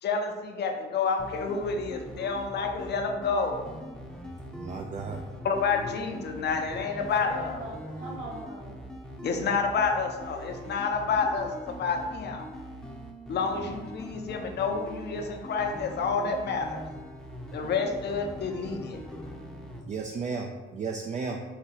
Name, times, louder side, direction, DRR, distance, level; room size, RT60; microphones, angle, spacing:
voice 1, 0.0-3.6 5.4-7.6 9.2-12.5 13.3-16.8 17.5-19.0, left 5 dB, 60° left, 4 dB, 0.7 m, -29 dB
sound 1, 1.2-19.8, equal, 5° left, 0.7 m, -42 dB
voice 2, 4.6-5.2 19.9-21.4, right 4 dB, 35° right, 2 dB, 0.4 m, -34 dB
voice 3, 6.7-8.8, right 1 dB, 75° right, -6 dB, 1.0 m, -42 dB
4.3 x 2.7 x 3.9 m, 1.3 s
cardioid pair, 90°, 20 cm